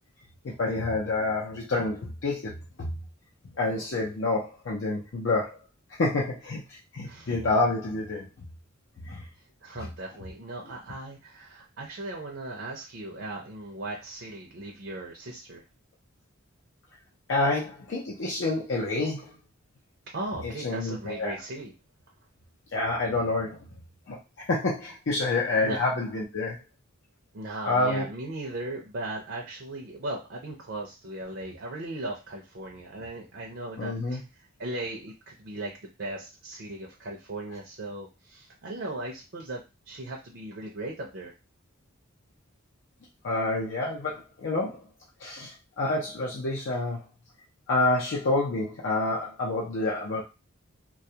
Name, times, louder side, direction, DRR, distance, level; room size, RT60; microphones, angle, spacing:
voice 1, 0.4-2.9 3.6-5.6 6.0-8.5 9.0-9.2 17.3-19.3 20.4-21.3 22.7-23.6 24.1-26.6 27.7-28.1 33.8-34.2 43.2-44.8 45.2-47.0 47.7-50.2, left 2 dB, 60° left, -3 dB, 0.5 m, -28 dB
voice 2, 9.6-15.6 20.1-21.7 25.6-25.8 27.3-41.3, right 2 dB, 55° right, 0 dB, 0.5 m, -37 dB
2.2 x 2.1 x 2.7 m, 0.27 s
head